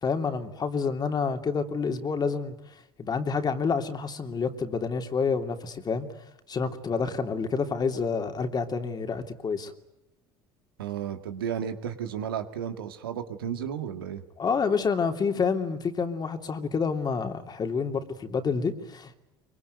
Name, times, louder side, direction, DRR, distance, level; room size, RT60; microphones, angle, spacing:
voice 1, 0.0-2.6 3.0-6.1 6.5-9.7 14.4-19.1, left 5 dB, 35° left, 6 dB, 3.0 m, -28 dB
voice 2, 10.8-14.2, right 8 dB, 85° right, 7 dB, 2.0 m, -33 dB
24.0 x 23.5 x 9.5 m, 0.89 s
hypercardioid pair, 70°, 12 cm